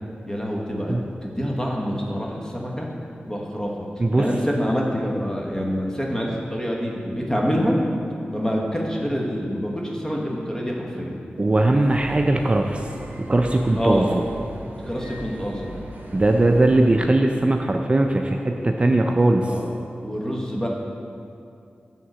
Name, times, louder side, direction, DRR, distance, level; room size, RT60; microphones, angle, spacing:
voice 1, 0.3-2.9 3.3-3.9 4.2-7.8 8.3-11.2 13.8-14.2 14.8-15.7 19.5-20.7, equal, 15° left, -2 dB, 1.2 m, -26 dB
voice 2, 11.4-12.8 13.2-14.2 16.1-19.5, right 2 dB, 30° right, 3 dB, 0.4 m, -19 dB
sound 1, 11.8-16.9, right 1 dB, 55° right, 0.9 m, -38 dB
7.9 x 3.6 x 6.1 m, 2.5 s
cardioid pair, 60°, 4 cm